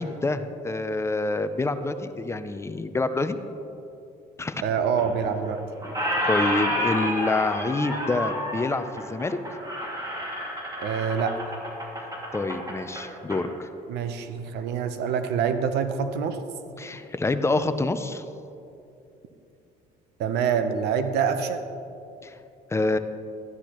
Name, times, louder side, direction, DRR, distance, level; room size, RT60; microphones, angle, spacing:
voice 1, 0.0-3.4 4.4-4.6 6.3-9.4 12.3-13.7 16.8-18.2 22.2-22.4 22.7-23.0, left 2 dB, 15° left, 10 dB, 0.5 m, -27 dB
voice 2, 4.6-5.6 10.8-11.5 13.9-16.4 20.2-21.6, right 7 dB, 80° right, 9 dB, 0.8 m, -26 dB
Squeak, 5.0-5.5 5.8-13.4, equal, 20° right, 2.2 m, -30 dB
13.5 x 9.9 x 3.0 m, 2.7 s
cardioid pair, 110°, 17 cm